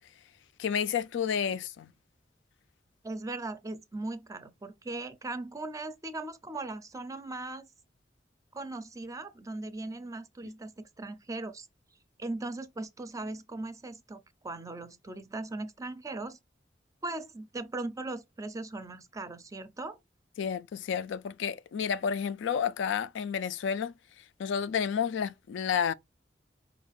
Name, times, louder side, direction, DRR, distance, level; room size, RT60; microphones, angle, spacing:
voice 1, 0.6-1.9 20.4-23.9 24.4-25.9, left 7 dB, 90° left, 0.3 m, -30 dB
voice 2, 3.0-7.7 8.5-11.7 12.2-16.4 17.0-20.0, right 2 dB, 20° right, 0.4 m, -39 dB
4.7 x 2.4 x 3.5 m
head